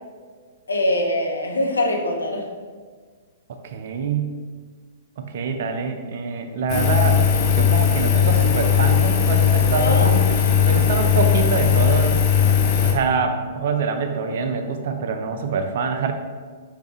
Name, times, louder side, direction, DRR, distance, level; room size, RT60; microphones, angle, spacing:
voice 1, 0.7-2.5 9.8-10.1 10.4-10.9, left 1 dB, 75° left, 1 dB, 0.6 m, -23 dB
voice 2, 3.6-4.4 5.2-7.2 7.5-12.2 12.8-16.1, right 5 dB, 55° right, 6 dB, 0.4 m, -25 dB
Engine, 6.7-12.9, left 8 dB, 35° left, 0.6 m, -18 dB
4.5 x 2.6 x 3.4 m, 1.6 s
figure-of-eight pair, 110°, 0 cm